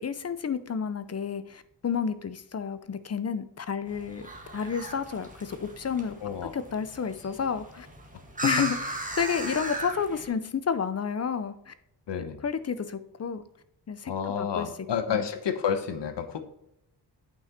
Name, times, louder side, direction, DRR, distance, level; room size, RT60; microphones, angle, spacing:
voice 1, 0.0-6.2 6.5-7.9 8.4-8.8 9.2-11.7 12.4-13.4 13.9-14.1 14.4-14.7 15.1-15.2, left 6 dB, 35° left, 12 dB, 0.6 m, -30 dB
sound 1, 3.9-10.3, right 2 dB, 20° right, 1.7 m, -37 dB
voice 2, 6.2-6.5 8.4-8.7 12.1-12.4 14.1-16.4, left 7 dB, 80° left, 9 dB, 1.1 m, -30 dB
8.6 x 5.9 x 4.3 m, 0.77 s
wide cardioid pair, 150°, 42 cm